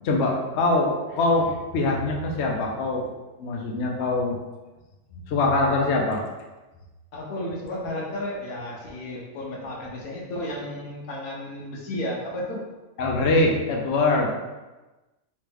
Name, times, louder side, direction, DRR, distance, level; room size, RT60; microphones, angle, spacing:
voice 1, 0.0-3.1 3.4-4.4 5.3-6.2 13.0-14.3, left 2 dB, 60° left, 0 dB, 0.8 m, -23 dB
voice 2, 7.1-12.7 13.6-13.7, left 1 dB, 85° left, -1 dB, 1.2 m, -33 dB
3.2 x 3.0 x 3.4 m, 1.1 s
omnidirectional pair, 1.5 m